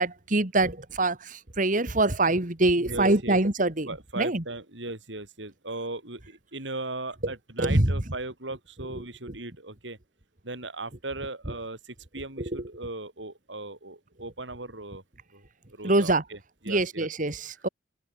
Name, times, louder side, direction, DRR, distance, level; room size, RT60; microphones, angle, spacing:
voice 1, 0.0-3.9 4.2-4.4 7.6-7.9 9.0-9.1 12.4-12.5 15.8-16.2 16.7-17.7, right 2 dB, 45° right, 2.2 m, -24 dB
voice 2, 2.8-3.4 3.9-10.0 10.4-15.0 15.3-15.4 15.7-17.1, right 2 dB, 80° right, 5.7 m, -38 dB
head